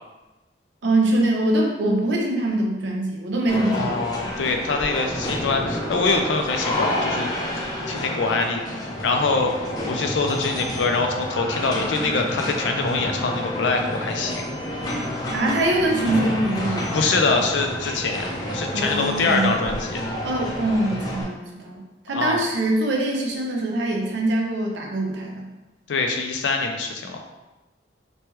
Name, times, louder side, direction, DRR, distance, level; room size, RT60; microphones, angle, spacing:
voice 1, 0.8-4.0 15.3-17.0 18.7-19.6 20.2-25.5, right 1 dB, 75° right, 0 dB, 0.6 m, -23 dB
sound 1, 3.5-21.2, left 1 dB, 20° left, 0.4 m, -29 dB
voice 2, 3.7-7.3 7.9-9.5 9.8-14.5 16.9-18.3 18.5-20.0 22.1-22.4 25.9-27.2, left 3 dB, 85° left, 4 dB, 0.4 m, -24 dB
3.1 x 2.2 x 3.0 m, 1.1 s
head